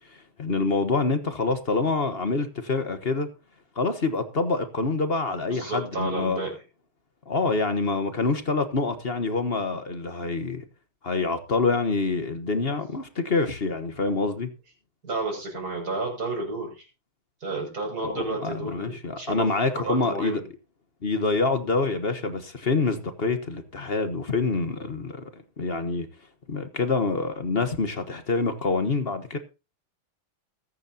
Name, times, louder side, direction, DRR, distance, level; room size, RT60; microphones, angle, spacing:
voice 1, 0.4-3.3 3.8-6.4 7.3-10.6 11.0-14.5 18.0-20.4 21.0-25.2 25.6-26.1 26.5-29.4, left 3 dB, 35° left, 1.2 m, -26 dB
voice 2, 5.5-6.6 15.0-16.9 17.4-19.5 19.8-20.4, right 3 dB, 45° right, 7.3 m, -31 dB
21.0 x 9.5 x 2.9 m
omnidirectional pair, 2.3 m